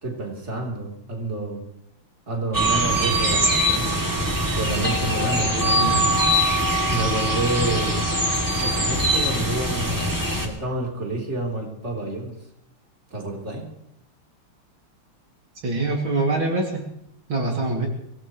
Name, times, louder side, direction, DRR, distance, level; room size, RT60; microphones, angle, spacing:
voice 1, 0.0-1.6 2.3-4.0 4.5-6.2 6.9-8.0 8.6-10.1 10.4-12.3 13.1-13.7, right 2 dB, 30° right, -1 dB, 3.7 m, -29 dB
sound 1, 2.5-10.5, right 1 dB, 10° right, 2.6 m, -22 dB
voice 2, 5.7-6.1 15.6-16.8 17.3-17.9, right 2 dB, 65° right, 0 dB, 3.3 m, -24 dB
24.5 x 18.0 x 3.1 m, 0.78 s
omnidirectional pair, 2.4 m